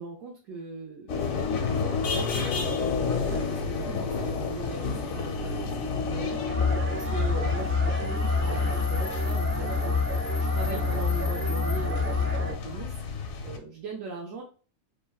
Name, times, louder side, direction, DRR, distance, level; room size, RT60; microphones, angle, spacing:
voice 1, 0.0-14.4, right 4 dB, 75° right, -1 dB, 1.0 m, -40 dB
sound 1, 1.1-13.6, left 5 dB, 85° left, 1.1 m, -31 dB
sound 2, 6.5-12.5, left 3 dB, 55° right, 1.8 m, -27 dB
3.3 x 2.1 x 2.2 m, 0.38 s
omnidirectional pair, 1.4 m